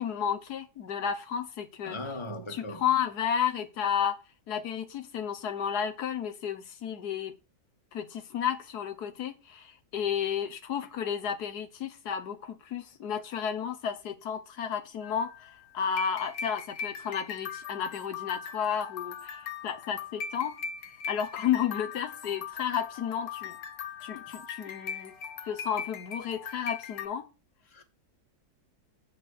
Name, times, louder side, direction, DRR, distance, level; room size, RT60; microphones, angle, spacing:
voice 1, 0.0-2.0 2.5-4.2 4.5-7.4 7.9-20.5 21.1-23.6 24.0-25.1 25.4-27.2, left 8 dB, 90° left, 1.6 m, -32 dB
voice 2, 1.8-2.8 27.7-27.8, left 1 dB, 20° left, 1.5 m, -38 dB
sound 1, 15.0-27.1, left 6 dB, 70° left, 1.4 m, -40 dB
8.5 x 5.2 x 6.5 m
omnidirectional pair, 1.6 m